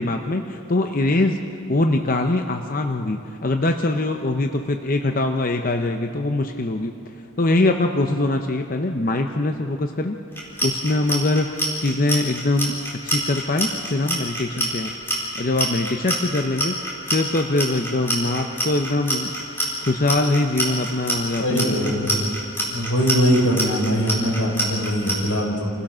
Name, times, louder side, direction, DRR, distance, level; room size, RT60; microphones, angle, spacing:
voice 1, 0.0-1.4 1.7-6.9 7.4-10.2 10.6-11.5 11.8-12.8 13.0-14.9 15.3-19.3 19.8-22.0, left 2 dB, 40° left, 4 dB, 0.8 m, -23 dB
Clock, 10.3-25.1, equal, 10° left, 4.1 m, -25 dB
voice 2, 21.4-22.4 22.7-25.7, equal, 90° left, 0 dB, 4.8 m, -22 dB
28.5 x 16.0 x 6.3 m, 2.6 s
head